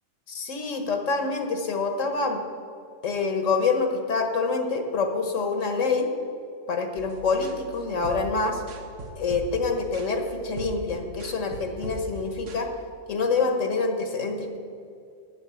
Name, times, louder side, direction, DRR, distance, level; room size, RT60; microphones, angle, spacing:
voice 1, 0.3-2.4 3.0-6.1 6.7-8.6 9.2-12.7 13.1-14.6, left 4 dB, 80° left, 5 dB, 1.5 m, -26 dB
sound 1, 7.0-12.7, right 1 dB, 75° right, 1.3 m, -40 dB
8.1 x 7.5 x 8.2 m, 2.4 s
omnidirectional pair, 1.3 m